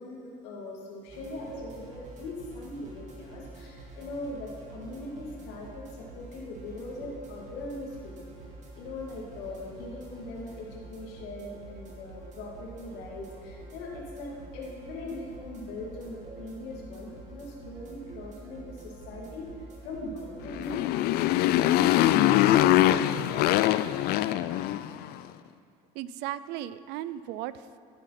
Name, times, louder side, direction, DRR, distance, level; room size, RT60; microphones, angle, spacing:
voice 1, 0.0-8.1 8.7-21.3, left 2 dB, 85° left, -3 dB, 2.6 m, -40 dB
sound 1, 1.1-20.7, right 2 dB, 45° right, 2.7 m, -47 dB
Motorcycle, 20.4-25.1, left 13 dB, 60° left, 0.4 m, -23 dB
voice 2, 25.9-27.8, right 12 dB, 75° right, 15 dB, 0.5 m, -36 dB
12.0 x 9.9 x 5.9 m, 2.4 s
cardioid pair, 130°, 18 cm